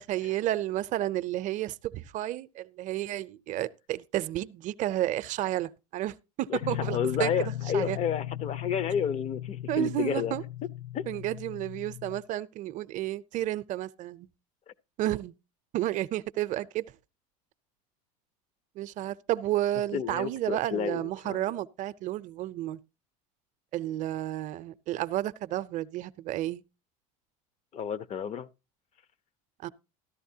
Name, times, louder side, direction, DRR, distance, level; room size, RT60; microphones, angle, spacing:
voice 1, 0.0-8.0 9.7-10.4 11.1-14.3 15.0-15.3 15.7-16.9 18.8-22.8 23.7-26.6 29.6-29.7, right 14 dB, 45° right, 0.6 m, -31 dB
voice 2, 6.5-10.4 10.9-11.0 19.9-21.4 27.7-28.5, left 7 dB, 40° left, 0.6 m, -31 dB
sound 1, 6.6-12.2, left 12 dB, 75° left, 0.7 m, -37 dB
14.0 x 11.0 x 2.8 m
supercardioid pair, 120°, 17 cm